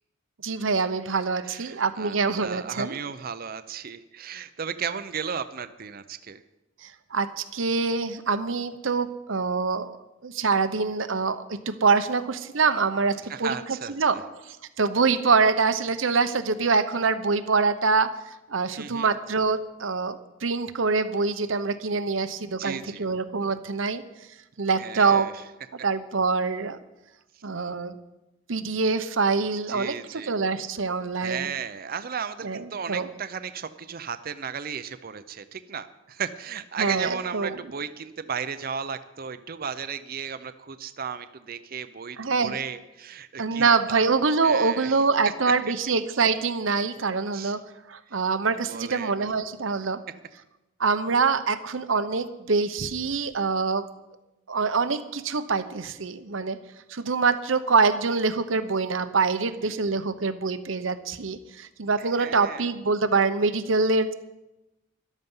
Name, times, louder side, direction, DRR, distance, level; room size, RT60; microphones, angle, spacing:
voice 1, 0.4-3.0 6.8-9.9 10.2-13.5 13.9-14.2 14.5-24.0 24.6-25.3 25.8-26.8 27.4-27.9 28.5-31.5 32.4-33.1 36.8-37.6 42.2-42.6 43.4-47.6 47.9-50.0 50.8-53.8 54.5-56.6 56.9-64.1, right 4 dB, 75° right, 12 dB, 0.9 m, -25 dB
voice 2, 1.5-6.4 13.3-13.9 18.8-19.1 22.6-23.1 24.8-25.3 29.7-30.4 31.2-44.1 44.4-44.9 47.3-47.5 48.7-49.1 59.6-59.7 62.0-62.6, right 6 dB, 45° right, 11 dB, 0.6 m, -35 dB
13.5 x 12.0 x 5.6 m, 0.98 s
head